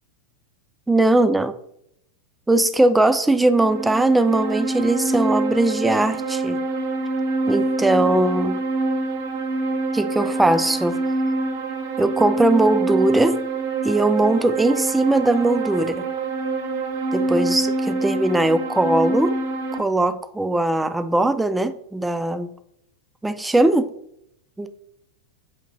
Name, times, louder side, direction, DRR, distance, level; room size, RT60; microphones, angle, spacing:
voice 1, 0.9-1.5 2.5-6.6 7.5-8.6 9.9-11.0 12.0-13.4 13.8-16.0 17.1-19.4 19.8-22.5 23.2-23.9 24.6-24.7, right 2 dB, 5° right, 0.3 m, -20 dB
sound 1, 3.5-19.8, right 2 dB, 50° right, 0.6 m, -25 dB
6.5 x 2.9 x 2.6 m
figure-of-eight pair, 90°, 0 cm